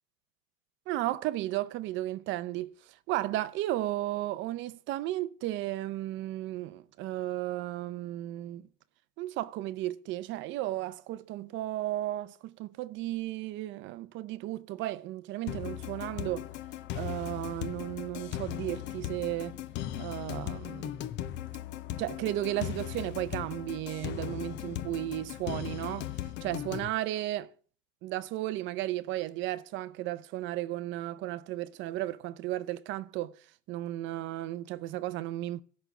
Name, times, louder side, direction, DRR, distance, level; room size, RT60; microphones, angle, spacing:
voice 1, 0.9-8.7 9.2-16.5 16.9-19.6 20.0-21.0 22.0-26.1 26.4-27.5 28.0-33.3 33.7-35.6, right 15 dB, 30° right, 0.5 m, -34 dB
sound 1, 15.5-26.9, left 12 dB, 30° left, 0.6 m, -38 dB
14.0 x 6.2 x 7.9 m
supercardioid pair, 150°, 38 cm